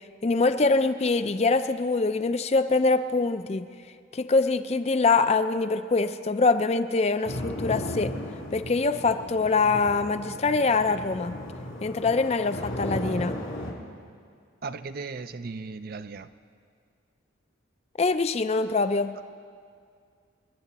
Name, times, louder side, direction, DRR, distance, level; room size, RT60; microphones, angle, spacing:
voice 1, 0.2-3.6 4.1-8.1 8.5-11.3 11.8-13.4 18.0-19.1, left 3 dB, 30° left, 10 dB, 0.4 m, -24 dB
sound 1, 7.2-13.7, left 1 dB, 80° left, 2.8 m, -35 dB
voice 2, 14.6-16.3, right 4 dB, 45° right, 12 dB, 0.4 m, -36 dB
27.5 x 10.5 x 4.1 m, 2.2 s
head